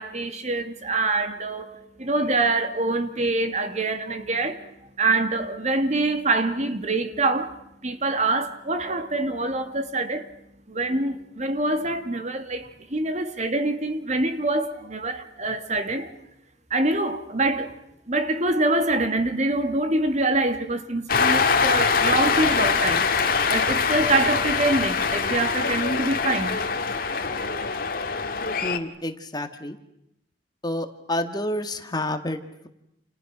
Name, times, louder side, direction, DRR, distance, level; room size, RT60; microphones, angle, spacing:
voice 1, 0.0-4.6 5.0-7.5 7.8-10.3 10.7-16.1 16.7-17.7 18.1-23.1 23.5-26.6, right 2 dB, 40° right, 2.1 m, -25 dB
Cheering, 21.1-28.8, left 5 dB, 55° left, 1.9 m, -23 dB
voice 2, 28.6-29.8 30.6-32.7, left 1 dB, 25° left, 1.9 m, -29 dB
29.5 x 29.5 x 6.1 m
head